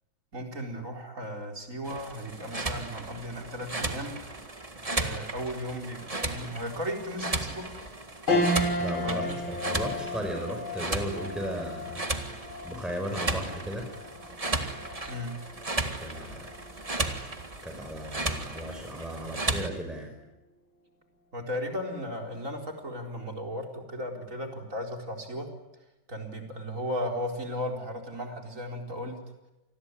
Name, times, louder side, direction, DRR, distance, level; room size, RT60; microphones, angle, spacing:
voice 1, 0.3-4.1 4.9-7.7 9.0-9.4 15.1-15.3 21.3-25.5 26.1-29.2, equal, 40° right, 3 dB, 4.6 m, -35 dB
sound 1, 1.8-19.7, right 2 dB, 20° right, 1.8 m, -35 dB
sound 2, 8.3-17.9 18.4-18.5 19.8-20.2, left 1 dB, 85° left, 7.0 m, -34 dB
voice 2, 8.8-12.0 12.6-13.9 15.7-16.5 17.6-20.1, equal, ahead, 3 dB, 5.2 m, -35 dB
28.0 x 20.5 x 9.7 m, 0.99 s
omnidirectional pair, 2.1 m